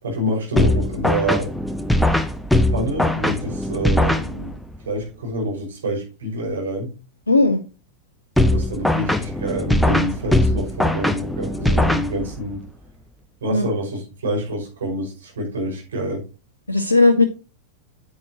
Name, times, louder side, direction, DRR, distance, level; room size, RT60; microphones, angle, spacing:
voice 1, 0.0-1.5 2.7-4.5 4.8-6.9 8.4-12.6 13.4-16.2, equal, 65° right, -1 dB, 5.7 m, -27 dB
sound 1, 0.6-4.8 8.4-12.6, left 1 dB, 5° left, 0.8 m, -20 dB
voice 2, 7.3-7.6 13.5-13.6 16.7-17.2, left 2 dB, 80° left, 6 dB, 0.8 m, -16 dB
9.6 x 8.7 x 3.0 m, 0.31 s
figure-of-eight pair, 90°, 0 cm